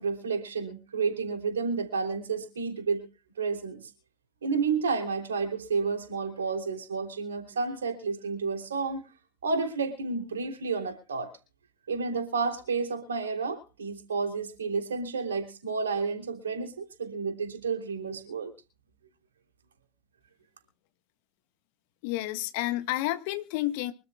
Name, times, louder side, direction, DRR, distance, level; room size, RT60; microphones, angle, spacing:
voice 1, 0.0-3.1 3.4-3.8 4.4-9.0 9.4-11.3 11.9-18.5, right 4 dB, 65° right, 5 dB, 3.3 m, -31 dB
voice 2, 22.0-23.9, left 16 dB, 45° left, 9 dB, 1.5 m, -30 dB
25.0 x 13.0 x 2.4 m, 0.33 s
figure-of-eight pair, 90°, 0 cm